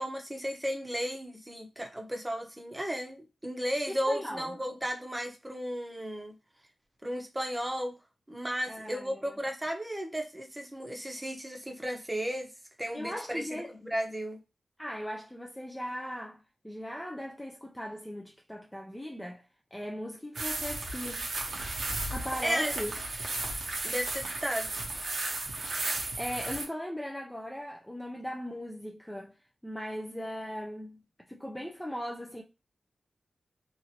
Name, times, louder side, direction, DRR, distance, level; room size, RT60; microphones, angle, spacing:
voice 1, 0.0-6.3 7.0-8.0 8.3-12.5 12.8-14.4 22.4-22.7 23.8-24.7, equal, 15° right, 0.8 m, -34 dB
voice 2, 3.9-4.5 8.7-9.3 12.9-13.7 14.8-19.4 19.7-21.3 22.1-22.9 26.2-29.3 29.6-31.0 31.3-32.4, equal, 5° left, 0.4 m, -38 dB
sound 1, 20.3-26.6, right 2 dB, 90° right, 0.8 m, -34 dB
3.0 x 2.5 x 2.8 m
wide cardioid pair, 75°, 0 cm